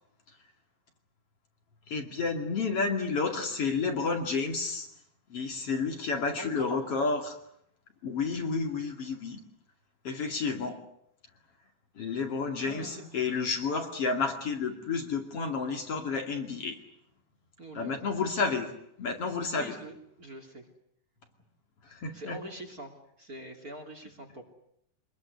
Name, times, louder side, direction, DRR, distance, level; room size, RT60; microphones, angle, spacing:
voice 1, 1.9-4.9 5.3-7.4 8.0-9.4 10.0-10.8 11.9-16.8 17.7-18.7 19.0-19.7 21.8-22.4, left 4 dB, 50° left, 4 dB, 3.2 m, -31 dB
voice 2, 6.4-6.8 12.6-13.3 17.6-18.3 19.5-20.7 22.1-24.4, right 1 dB, 30° right, 3 dB, 3.1 m, -44 dB
25.5 x 21.0 x 9.5 m, 0.71 s
omnidirectional pair, 3.5 m